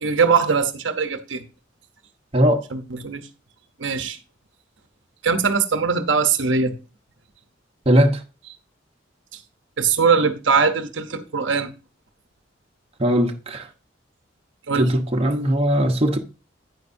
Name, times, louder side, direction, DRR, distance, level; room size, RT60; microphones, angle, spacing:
voice 1, 0.0-1.4 2.7-3.2 3.8-4.2 5.2-6.7 9.8-11.7 14.7-14.9, right 5 dB, 80° right, 0.8 m, -21 dB
voice 2, 2.3-2.6 7.9-8.2 13.0-13.7 14.8-16.2, equal, 30° right, 1.0 m, -19 dB
9.4 x 9.2 x 2.7 m
head